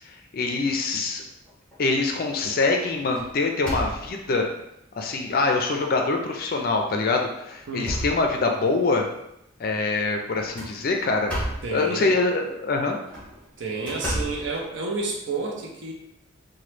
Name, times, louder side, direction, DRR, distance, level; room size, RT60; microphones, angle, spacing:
voice 1, 0.3-1.2 1.8-4.5 5.0-9.1 9.6-11.3 11.7-13.0, left 3 dB, 45° left, 2 dB, 0.4 m, -24 dB
sound 1, 1.2-1.8 2.2-2.5 2.8-4.4 5.1-5.2 5.6-5.7 6.7-6.9 7.4-8.8 10.3-11.8 12.9-15.2, equal, 5° left, 0.8 m, -34 dB
voice 2, 7.7-8.0 11.6-12.2 13.6-15.9, right 3 dB, 60° right, 0 dB, 0.6 m, -30 dB
3.0 x 2.2 x 3.2 m, 0.82 s
head